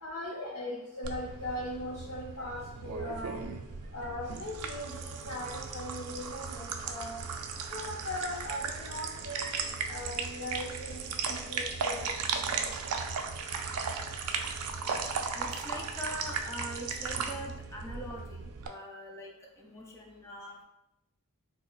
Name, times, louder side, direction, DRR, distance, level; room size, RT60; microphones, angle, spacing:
voice 1, 0.0-3.4 3.9-7.2 7.7-12.2, left 1 dB, 75° left, -6 dB, 0.6 m, -39 dB
sound 1, 1.0-18.7, right 5 dB, 75° right, 0.4 m, -36 dB
voice 2, 15.3-20.6, equal, 10° left, 0 dB, 0.4 m, -43 dB
4.3 x 2.0 x 2.3 m, 0.87 s
head